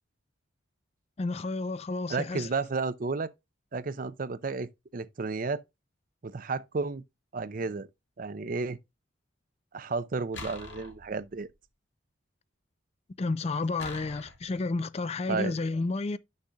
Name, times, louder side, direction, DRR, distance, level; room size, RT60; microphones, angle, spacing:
voice 1, 1.2-2.5 13.2-16.2, left 3 dB, 30° left, 0.4 m, -31 dB
voice 2, 2.1-3.3 3.7-5.6 6.2-7.0 7.3-7.9 8.2-8.8 9.7-11.5 15.3-15.6, right 4 dB, 45° right, 0.5 m, -32 dB
sound 1, 10.3-11.5 13.8-14.6, left 3 dB, 65° left, 2.0 m, -44 dB
11.0 x 6.5 x 2.2 m
head